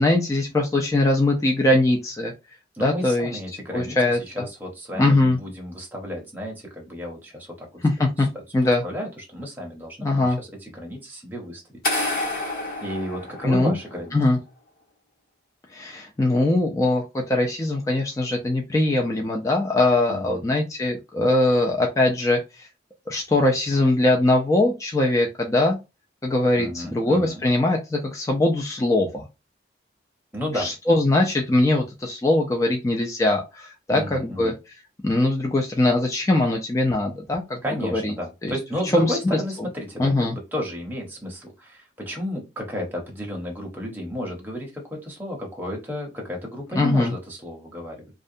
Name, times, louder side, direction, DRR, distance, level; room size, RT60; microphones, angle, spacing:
voice 1, 0.0-2.3 2.8-3.4 3.7-4.5 4.9-5.4 7.8-8.3 8.5-8.8 10.0-10.4 13.4-13.7 14.1-14.4 15.7-22.7 23.1-25.8 26.2-29.3 30.5-34.5 35.0-38.1 38.4-38.6 38.9-39.4 40.0-40.4 46.8-47.1, left 2 dB, 15° left, 1 dB, 0.3 m, -21 dB
voice 2, 2.7-7.8 8.2-8.3 8.8-11.6 12.8-14.2 20.1-20.4 26.5-27.4 30.3-30.7 33.9-34.5 37.6-48.1, equal, 10° right, -1 dB, 0.7 m, -33 dB
sound 1, 11.8-13.9, left 2 dB, 50° left, 1.2 m, -28 dB
2.4 x 2.2 x 2.6 m, 0.25 s
head